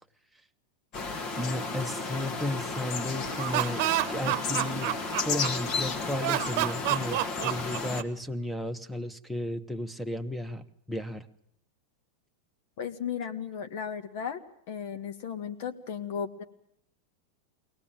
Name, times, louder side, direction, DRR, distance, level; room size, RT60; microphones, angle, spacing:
sound 1, 0.9-8.0, left 4 dB, 45° left, 2.0 m, -33 dB
voice 1, 1.4-4.9 5.2-11.3, left 1 dB, ahead, 12 dB, 1.3 m, -34 dB
Laughter, 3.2-5.7 6.2-8.2, right 16 dB, 55° right, 0.9 m, -29 dB
voice 2, 12.8-14.4 14.7-16.4, left 7 dB, 65° left, 8 dB, 1.8 m, -35 dB
22.0 x 18.5 x 8.9 m, 0.69 s
hypercardioid pair, 100°, 0 cm